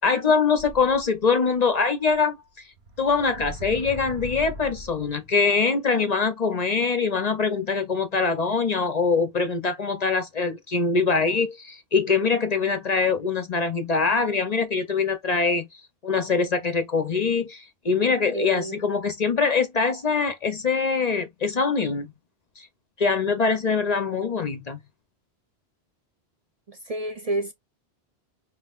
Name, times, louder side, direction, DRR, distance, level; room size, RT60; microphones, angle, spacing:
voice 1, 0.0-2.3 3.0-15.7 16.0-22.1 22.6-22.7 23.0-24.8, left 4 dB, 45° left, 0.6 m, -23 dB
sound 1, 0.6-1.5 2.1-2.2 2.8-5.2, right 1 dB, 75° right, 1.3 m, -39 dB
voice 2, 18.3-18.8 26.7-27.5, right 2 dB, 45° right, 0.6 m, -29 dB
5.4 x 3.0 x 2.3 m
omnidirectional pair, 1.1 m